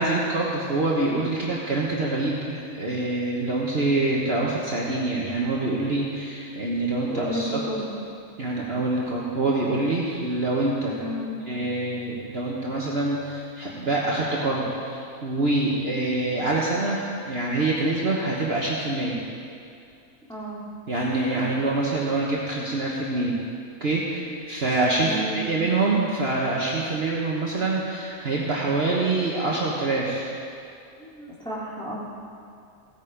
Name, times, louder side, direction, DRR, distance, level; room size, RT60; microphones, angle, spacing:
voice 1, 0.0-7.6 8.4-11.0 11.5-19.2 20.9-23.3 23.8-30.3, right 2 dB, 45° right, -4 dB, 1.4 m, -25 dB
voice 2, 7.1-7.9 11.0-11.4 20.3-20.6 25.0-25.5 31.0-31.9, equal, 5° left, -7 dB, 2.6 m, -32 dB
15.5 x 9.1 x 5.2 m, 2.4 s
omnidirectional pair, 1.5 m